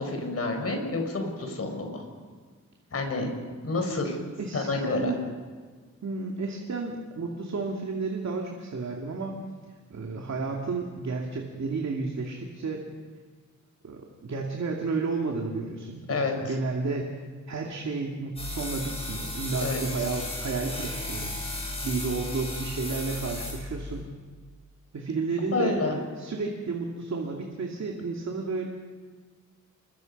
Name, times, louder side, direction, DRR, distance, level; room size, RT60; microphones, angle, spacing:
voice 1, 0.0-2.0 2.9-3.3 3.6-4.2 4.5-5.1 16.1-16.5 19.6-19.8 25.5-26.0, left 3 dB, 50° left, 3 dB, 4.6 m, -29 dB
voice 2, 4.4-5.2 6.0-9.4 9.9-12.8 13.8-21.3 21.8-24.1 24.9-25.8 26.2-28.7, right 4 dB, 60° right, 0 dB, 2.5 m, -32 dB
sound 1, 18.4-24.0, left 1 dB, 20° left, 7.0 m, -35 dB
27.5 x 23.0 x 5.4 m, 1.5 s
wide cardioid pair, 160°, 30 cm